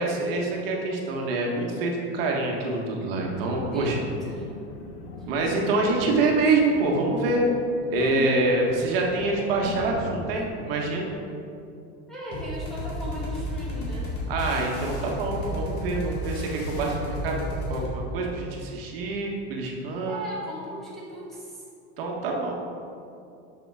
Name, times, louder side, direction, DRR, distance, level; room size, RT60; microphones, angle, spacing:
voice 1, 0.0-4.0 5.3-7.4 7.9-11.1 14.3-17.4 17.7-20.2 22.0-22.5, right 2 dB, 65° right, -1 dB, 1.6 m, -26 dB
Thunder, 3.2-10.5, left 3 dB, 70° left, 1.2 m, -40 dB
voice 2, 3.7-4.6 5.2-5.3 8.0-8.5 12.1-14.1 20.1-21.6, right 1 dB, ahead, -9 dB, 1.4 m, -37 dB
sound 1, 12.3-17.9, left 1 dB, 35° left, 1.9 m, -32 dB
8.2 x 6.1 x 4.9 m, 2.6 s
supercardioid pair, 175°, 31 cm